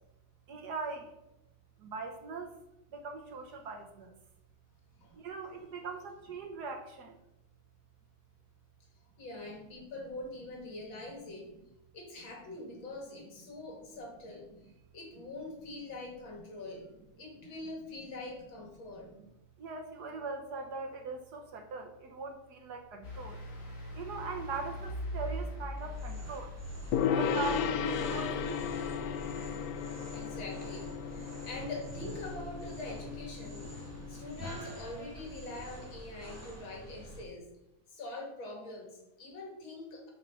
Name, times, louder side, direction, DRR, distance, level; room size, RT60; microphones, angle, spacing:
voice 1, 0.5-1.2 1.8-2.6 2.9-4.1 5.1-7.2 19.0-19.3 19.6-23.4 23.9-26.5 27.1-28.7, right 4 dB, 60° right, 4 dB, 1.3 m, -41 dB
voice 2, 9.2-11.5 11.9-14.5 14.9-16.9 17.2-19.1 30.1-37.5 37.9-40.1, left 2 dB, 70° left, 0 dB, 2.8 m, -44 dB
sound 1, 23.0-30.2, equal, 40° left, 1.9 m, -42 dB
sound 2, 25.8-37.2, right 1 dB, 10° right, 1.5 m, -47 dB
Gong, 26.9-34.4, left 7 dB, 85° left, 0.8 m, -35 dB
7.5 x 5.4 x 5.6 m, 0.89 s
omnidirectional pair, 2.2 m